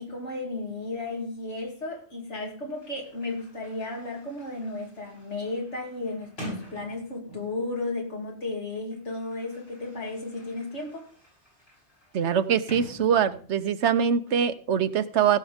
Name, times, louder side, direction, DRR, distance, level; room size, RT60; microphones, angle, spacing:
voice 1, 0.0-11.1, left 2 dB, 75° left, 2.9 m, -34 dB
Sliding door, 2.7-7.8 8.7-13.7, equal, 60° left, 6.8 m, -46 dB
voice 2, 12.1-15.4, right 8 dB, 75° right, 1.1 m, -23 dB
16.0 x 6.7 x 5.1 m
omnidirectional pair, 1.2 m